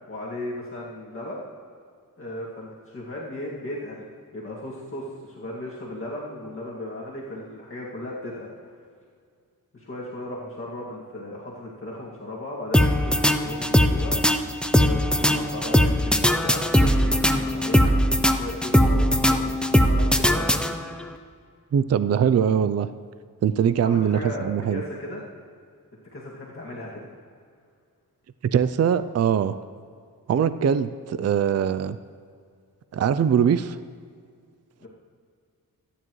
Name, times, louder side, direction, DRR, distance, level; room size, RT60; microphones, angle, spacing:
voice 1, 0.1-1.4 2.2-4.1 4.3-8.5 9.7-14.2 14.8-17.9 18.2-20.5 23.8-24.4 24.7-25.2 26.1-27.1 34.8-34.9, left 1 dB, 35° left, -6 dB, 2.2 m, -36 dB
sound 1, 12.7-21.1, equal, 5° left, 0.5 m, -20 dB
voice 2, 21.7-22.9 23.4-24.8 28.4-29.6 30.3-32.0 32.9-33.8, right 8 dB, 45° right, 13 dB, 0.4 m, -22 dB
25.5 x 10.0 x 3.1 m, 2.1 s
wide cardioid pair, 135°, 36 cm